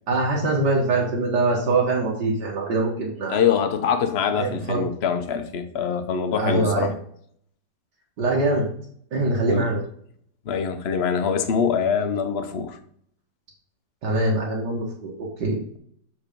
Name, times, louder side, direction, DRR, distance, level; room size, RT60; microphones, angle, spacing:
voice 1, 0.1-3.4 4.4-4.8 6.4-6.9 8.2-8.7 9.1-9.8 14.0-15.6, right 2 dB, 80° right, -3 dB, 2.0 m, -23 dB
voice 2, 3.3-6.9 9.5-9.7 10.5-12.8, left 7 dB, 50° left, 8 dB, 0.8 m, -24 dB
7.2 x 4.0 x 5.0 m, 0.63 s
omnidirectional pair, 1.8 m